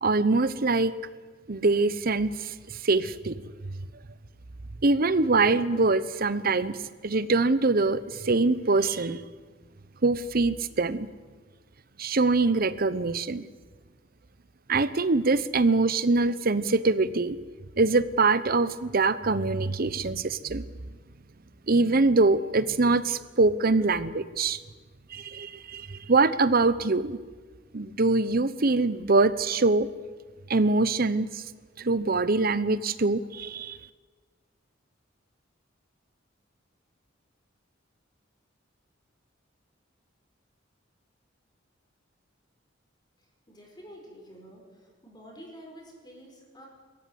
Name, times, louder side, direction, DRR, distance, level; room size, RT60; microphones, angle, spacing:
voice 1, 0.0-0.9 1.5-3.4 4.8-9.2 10.0-11.1 12.0-13.4 14.7-17.4 17.8-20.6 21.7-24.6 25.1-27.2 27.7-29.9 30.5-31.4 31.8-33.8, right 3 dB, 50° right, 15 dB, 0.9 m, -24 dB
voice 2, 43.5-46.7, equal, 25° left, -1 dB, 5.2 m, -48 dB
24.0 x 14.0 x 9.5 m, 1.4 s
head